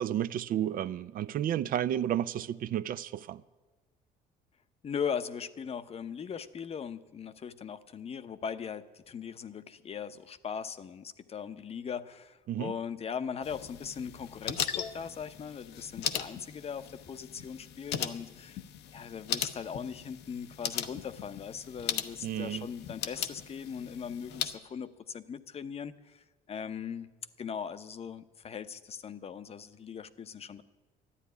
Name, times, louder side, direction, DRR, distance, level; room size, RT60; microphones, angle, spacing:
voice 1, 0.0-3.4 12.5-12.7 22.2-22.7, right 11 dB, 55° right, 0.5 m, -32 dB
voice 2, 4.8-18.6 18.9-27.1 27.4-30.6, left 7 dB, 35° left, 0.7 m, -39 dB
sound 1, 13.4-24.6, left 10 dB, 80° left, 0.9 m, -38 dB
12.5 x 9.9 x 9.4 m
cardioid pair, 110°, 17 cm